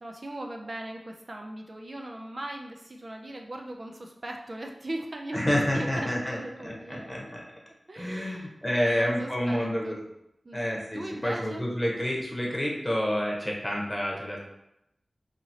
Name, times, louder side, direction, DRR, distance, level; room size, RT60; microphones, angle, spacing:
voice 1, 0.0-7.1 7.9-10.0 10.4-11.6, right 1 dB, 50° right, 2 dB, 0.3 m, -39 dB
voice 2, 5.3-7.4 8.0-10.0 10.5-14.4, equal, 20° left, -3 dB, 0.9 m, -29 dB
2.8 x 2.7 x 2.8 m, 0.83 s
cardioid pair, 40°, 0 cm